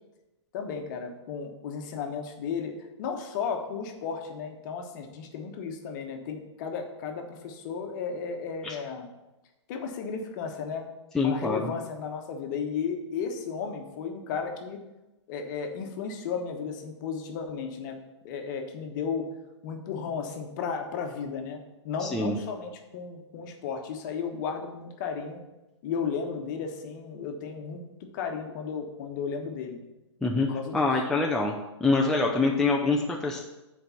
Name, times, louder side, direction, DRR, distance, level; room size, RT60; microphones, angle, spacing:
voice 1, 0.5-9.1 9.7-10.8 11.2-14.8 15.3-18.0 18.2-19.2 19.6-21.6 21.8-25.4 25.8-27.8 28.1-29.8 30.5-30.7, left 6 dB, 40° left, 4 dB, 1.2 m, -34 dB
voice 2, 11.1-11.7 22.0-22.4 30.2-31.5 31.8-33.4, left 3 dB, 5° left, -1 dB, 0.6 m, -25 dB
8.0 x 4.6 x 5.7 m, 1.0 s
figure-of-eight pair, 125°, 15 cm